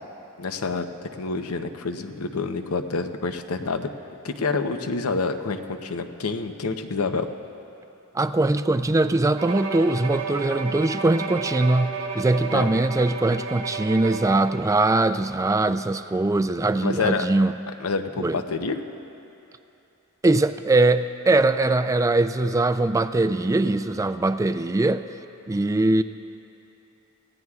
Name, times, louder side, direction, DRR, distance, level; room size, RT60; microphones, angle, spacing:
voice 1, 0.4-0.9 1.2-3.9 4.2-7.3 12.5-12.7 16.8-17.2 17.8-18.8, left 4 dB, 85° left, 7 dB, 0.8 m, -27 dB
voice 2, 8.1-17.6 18.2-18.4 20.2-25.1 25.5-26.0, right 2 dB, 15° right, 11 dB, 0.3 m, -21 dB
Bowed string instrument, 9.4-14.7, right 4 dB, 65° right, 1.4 m, -32 dB
26.0 x 16.5 x 2.4 m, 2.9 s
head